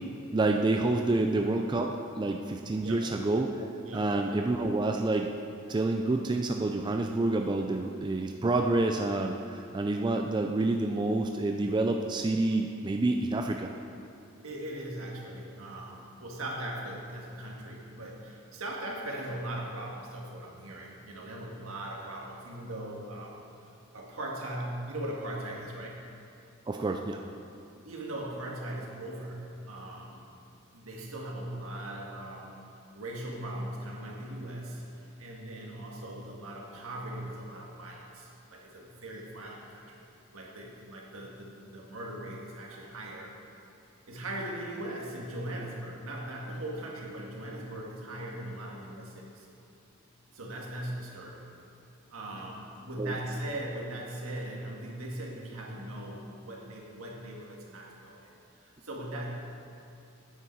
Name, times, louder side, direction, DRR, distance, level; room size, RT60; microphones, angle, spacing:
voice 1, 0.3-5.3 5.7-13.7 26.7-27.2 53.0-53.2, right 2 dB, 20° right, 3 dB, 0.3 m, -28 dB
voice 2, 2.8-3.1 3.8-4.1 14.4-23.4 23.9-26.1 27.9-30.2 30.7-32.6 32.9-40.0 40.3-43.4 44.1-49.5 50.3-51.5 52.1-58.3 58.6-59.3, right 1 dB, 75° right, -2 dB, 1.7 m, -39 dB
9.4 x 8.5 x 4.6 m, 2.7 s
head